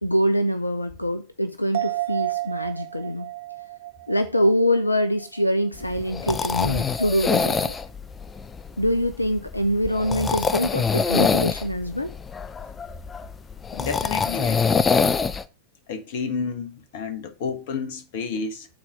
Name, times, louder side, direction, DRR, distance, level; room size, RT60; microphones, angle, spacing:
voice 1, 0.0-3.3 4.1-7.7 8.8-12.1, equal, 85° left, 0.5 m, -24 dB
sound 1, 1.7-5.4 5.8-5.9, right 17 dB, 60° right, 0.5 m, -32 dB
sound 2, 5.8-15.4, left 5 dB, 20° left, 0.6 m, -25 dB
voice 2, 13.7-14.9 15.9-18.7, left 5 dB, 50° left, 1.4 m, -30 dB
8.7 x 4.3 x 5.1 m
figure-of-eight pair, 90°, 0 cm